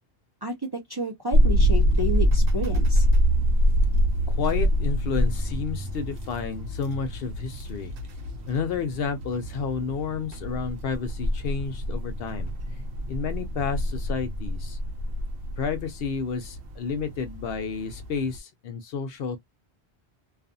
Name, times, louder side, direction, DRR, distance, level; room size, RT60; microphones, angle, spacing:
voice 1, 0.4-3.0, equal, 30° right, 0.6 m, -31 dB
sound 1, 1.3-18.4, equal, 80° right, 0.9 m, -25 dB
voice 2, 4.3-7.9 8.5-12.5 13.1-14.8 15.6-19.4, left 5 dB, 65° left, 0.7 m, -31 dB
2.4 x 2.4 x 2.5 m
omnidirectional pair, 1.1 m